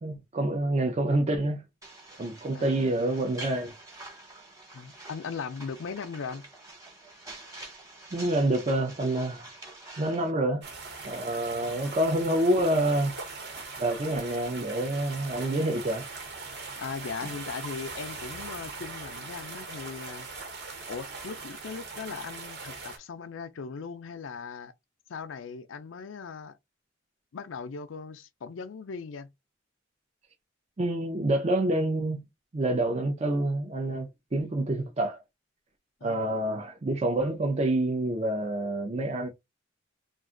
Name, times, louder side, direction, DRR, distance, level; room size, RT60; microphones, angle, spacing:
voice 1, 0.0-1.6 2.2-3.8 8.1-9.5 10.0-10.7 11.0-13.1 13.8-16.1 30.8-32.2 32.5-35.2 36.0-39.3, right 1 dB, 35° right, 0.5 m, -27 dB
sound 1, 1.8-10.3, right 2 dB, 20° right, 1.1 m, -46 dB
voice 2, 4.7-6.4 11.5-12.0 16.8-20.3 20.9-24.7 25.1-26.6 27.3-29.3 36.0-36.2, left 5 dB, 80° left, 0.5 m, -39 dB
sound 2, 10.6-23.0, right 4 dB, 60° right, 1.1 m, -40 dB
2.4 x 2.3 x 3.7 m
head